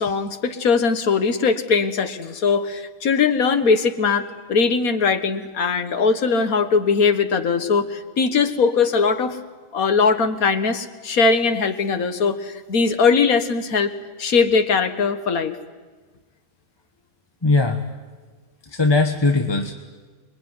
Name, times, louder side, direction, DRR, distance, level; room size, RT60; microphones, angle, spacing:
voice 1, 0.0-9.4 9.7-13.9 14.2-15.6, left 5 dB, 70° left, 8 dB, 1.9 m, -20 dB
voice 2, 17.4-17.8 18.7-19.7, left 3 dB, 20° left, 4 dB, 1.2 m, -19 dB
26.0 x 22.5 x 9.6 m, 1.3 s
omnidirectional pair, 1.5 m